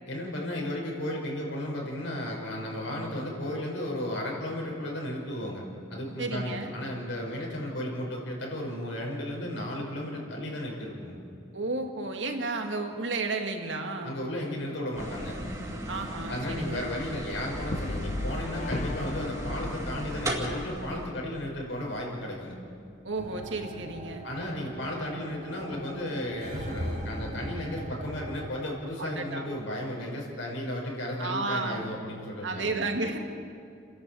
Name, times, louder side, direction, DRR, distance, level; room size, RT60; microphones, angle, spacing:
voice 1, 0.1-5.6 5.9-11.1 14.0-15.4 16.3-22.6 24.2-32.8, left 1 dB, 85° left, -2 dB, 5.5 m, -34 dB
voice 2, 6.2-6.7 11.5-14.2 15.9-16.9 23.0-24.2 29.0-29.5 31.2-31.9 32.4-33.2, right 3 dB, 80° right, 4 dB, 2.1 m, -32 dB
sound 1, 15.0-21.1, right 1 dB, 20° right, 2.6 m, -37 dB
Brass instrument, 17.5-21.8, left 2 dB, 35° left, 0.5 m, -36 dB
sound 2, 23.2-28.5, equal, 40° right, 3.1 m, -39 dB
29.5 x 11.0 x 8.6 m, 2.5 s
head